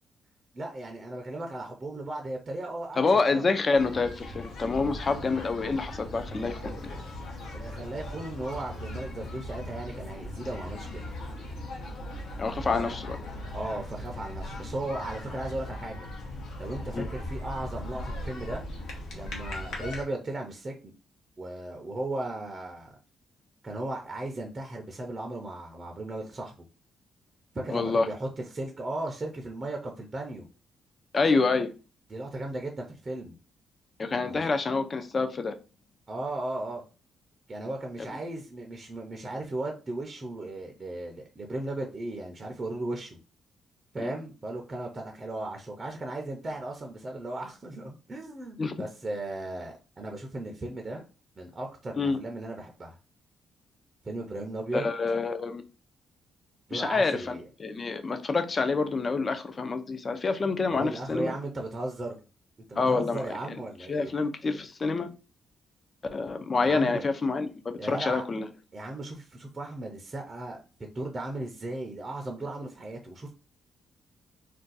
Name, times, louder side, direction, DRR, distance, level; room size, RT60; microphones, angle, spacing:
voice 1, 0.5-3.5 7.5-11.0 12.6-13.0 13.5-16.1 16.6-18.6 19.1-20.9 21.4-23.0 23.6-26.7 27.5-30.5 31.3-31.4 32.1-33.4 34.3-34.4 36.1-36.8 37.5-43.2 43.9-51.0 51.4-53.0 54.0-54.9 56.7-57.5 60.7-62.2 62.7-64.1 66.6-67.0 67.8-68.2 68.7-73.3, right 2 dB, 25° right, 0.5 m, -36 dB
voice 2, 3.0-6.8 12.4-13.2 16.9-17.1 27.7-28.1 31.1-31.7 34.0-35.5 44.0-44.1 48.6-48.8 51.9-52.2 54.7-55.6 56.7-61.3 62.8-63.2 63.9-65.1 66.1-68.5, left 4 dB, 30° left, 0.4 m, -27 dB
sound 1, 3.7-20.0, left 1 dB, 70° left, 0.9 m, -39 dB
2.5 x 2.2 x 3.9 m
cardioid pair, 130°, 0 cm